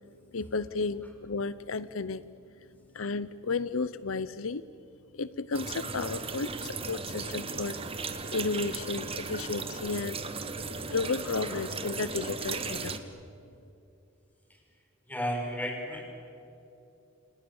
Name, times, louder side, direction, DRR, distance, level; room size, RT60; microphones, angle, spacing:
voice 1, 0.3-2.3 2.9-4.6 5.1-7.8 8.3-10.2 10.9-13.0, left 4 dB, 80° left, 15 dB, 0.7 m, -33 dB
sound 1, 5.5-13.0, right 4 dB, 30° right, 1.7 m, -36 dB
voice 2, 15.1-16.0, equal, 10° left, 1 dB, 5.7 m, -33 dB
29.5 x 28.0 x 7.2 m, 2.8 s
head